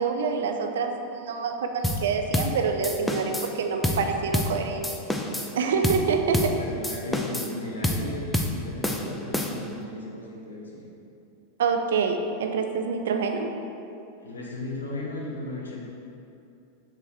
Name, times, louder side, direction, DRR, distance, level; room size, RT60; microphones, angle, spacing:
voice 1, 0.0-4.9 5.5-6.5 11.6-13.5, right 5 dB, 60° right, 5 dB, 0.5 m, -26 dB
sound 1, 1.8-2.1 2.3-2.6 2.8-3.5 3.8-4.1 4.3-4.6 4.8-5.5 5.8-6.1 6.3-6.6 6.8-7.5 7.8-8.1 8.3-8.6 8.8-9.7, left 1 dB, 5° left, 0.5 m, -27 dB
voice 2, 6.6-10.9 14.2-15.9, left 2 dB, 70° left, -3 dB, 1.1 m, -36 dB
6.9 x 5.9 x 3.3 m, 2.7 s
figure-of-eight pair, 90°, 0 cm